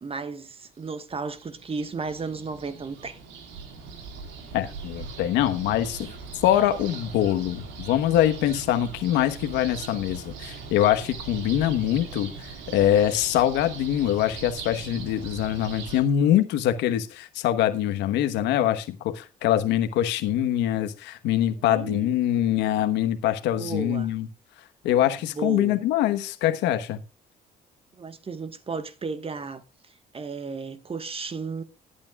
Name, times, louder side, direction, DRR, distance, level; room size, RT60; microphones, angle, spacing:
voice 1, 0.0-3.2 21.6-22.1 23.5-24.1 25.2-25.8 27.9-31.6, right 4 dB, 35° right, 1.4 m, -34 dB
sound 1, 0.9-16.0, right 5 dB, 90° right, 2.2 m, -40 dB
voice 2, 4.5-6.1 6.4-24.3 24.8-27.0, left 11 dB, 85° left, 1.2 m, -24 dB
18.5 x 8.8 x 2.4 m
supercardioid pair, 70°, 18 cm